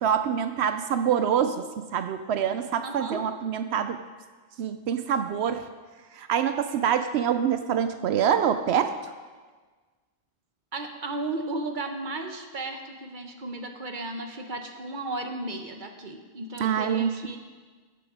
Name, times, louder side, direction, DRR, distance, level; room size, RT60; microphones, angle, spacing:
voice 1, 0.0-4.0 4.6-5.6 6.1-8.9 16.6-17.3, right 8 dB, 75° right, 9 dB, 0.8 m, -25 dB
voice 2, 2.8-3.2 10.7-17.4, right 2 dB, 50° right, 5 dB, 1.1 m, -34 dB
14.0 x 6.9 x 5.0 m, 1.4 s
omnidirectional pair, 1.1 m